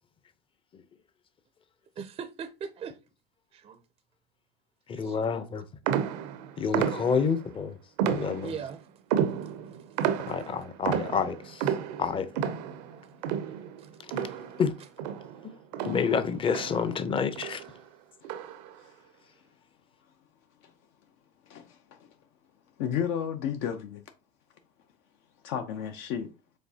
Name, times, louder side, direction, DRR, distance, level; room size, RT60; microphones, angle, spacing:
voice 1, 2.0-3.0 3.5-3.8 4.9-5.4 6.9-7.0 8.4-8.9 9.6-10.1 13.8-13.9 14.3-14.6, right 6 dB, 25° right, 0.4 m, -41 dB
voice 2, 4.9-5.7 6.6-7.8 8.1-8.5 10.3-11.7 12.0-12.3 14.6-14.7 15.8-17.6, left 6 dB, 25° left, 0.6 m, -28 dB
sound 1, 5.9-7.4 8.0-8.7 9.1-14.7 15.0-17.0 17.4-17.7 18.2-18.7, right 8 dB, 90° right, 0.6 m, -32 dB
voice 3, 21.5-22.0 22.8-24.0 25.4-26.3, left 8 dB, 70° left, 0.6 m, -32 dB
5.1 x 3.5 x 2.7 m
supercardioid pair, 120°, 21 cm